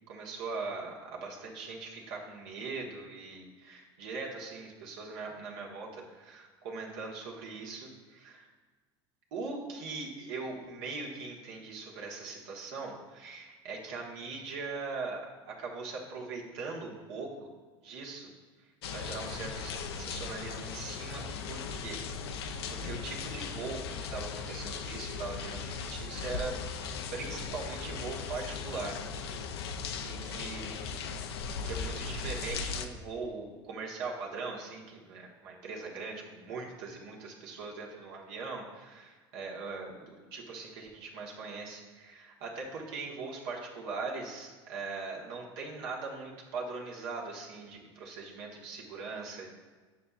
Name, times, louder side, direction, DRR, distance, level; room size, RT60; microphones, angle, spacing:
voice 1, 0.1-8.5 9.3-17.5 17.8-18.3 18.9-22.0 22.3-26.5 27.1-29.0 30.0-31.1 31.5-49.5, right 4 dB, 75° right, -2 dB, 1.3 m, -41 dB
sound 1, 18.8-32.9, left 5 dB, 85° left, 0.4 m, -38 dB
7.3 x 5.6 x 2.4 m, 1.4 s
hypercardioid pair, 80°, 13 cm